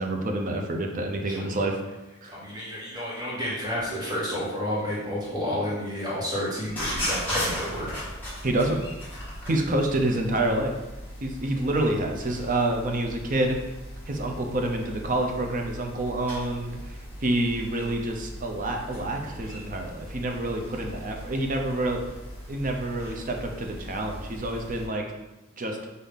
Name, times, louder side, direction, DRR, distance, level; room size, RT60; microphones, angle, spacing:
voice 1, 0.0-1.8 2.2-2.4 8.4-8.8 9.5-10.7 11.2-13.6 14.1-17.0 17.2-22.0 22.5-25.0 25.6-25.8, right 1 dB, 40° right, 2 dB, 0.6 m, -27 dB
voice 2, 2.3-7.9, equal, 20° right, -7 dB, 1.5 m, -30 dB
sound 1, 6.6-24.9, equal, 10° left, 1.4 m, -38 dB
5.6 x 2.7 x 3.6 m, 1.0 s
head